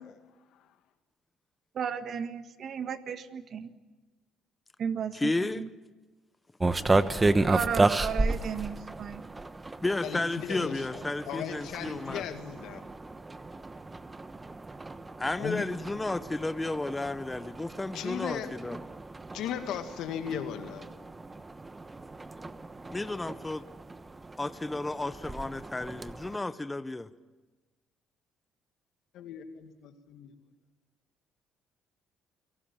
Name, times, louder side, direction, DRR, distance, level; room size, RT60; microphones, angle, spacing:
voice 1, 1.7-3.7 4.8-5.7 7.5-9.2, right 7 dB, 55° right, 9 dB, 1.6 m, -34 dB
voice 2, 5.1-5.6 9.8-12.2 15.2-18.8 22.9-23.6 24.4-27.1, left 2 dB, 15° left, 13 dB, 0.8 m, -32 dB
sound 1, 6.6-26.4, right 2 dB, 20° right, 1.1 m, -33 dB
voice 3, 10.0-12.8 15.4-15.6 17.9-18.5 19.3-20.9 29.1-30.3, left 9 dB, 75° left, 7 dB, 2.2 m, -37 dB
29.0 x 18.0 x 7.5 m, 1.2 s
cardioid pair, 85°, 0 cm